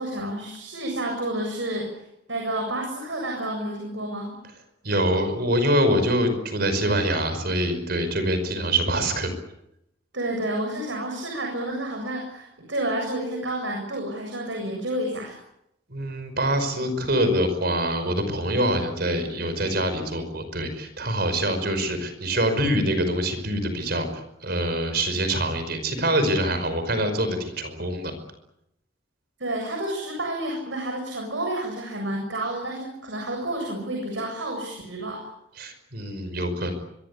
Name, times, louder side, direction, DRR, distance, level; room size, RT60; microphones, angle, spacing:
voice 1, 0.0-2.0 2.3-4.3 10.1-15.4 29.4-35.3, right 1 dB, 80° right, 2 dB, 7.5 m, -30 dB
voice 2, 4.8-9.3 15.9-28.1 35.6-36.8, right 1 dB, 55° right, 9 dB, 5.6 m, -25 dB
24.5 x 23.5 x 8.5 m, 0.81 s
head